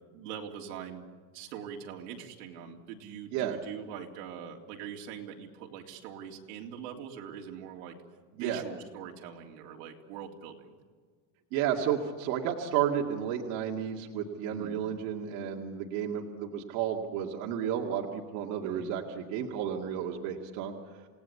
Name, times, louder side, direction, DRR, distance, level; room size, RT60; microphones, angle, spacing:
voice 1, 0.1-1.0 1.3-8.0 8.3-10.7 14.5-14.8 18.6-18.9, right 8 dB, 90° right, 1 dB, 3.5 m, -43 dB
voice 2, 11.5-20.7, right 9 dB, 60° right, 1 dB, 2.3 m, -32 dB
28.0 x 18.5 x 8.4 m, 1.5 s
cardioid pair, 175°, 45 cm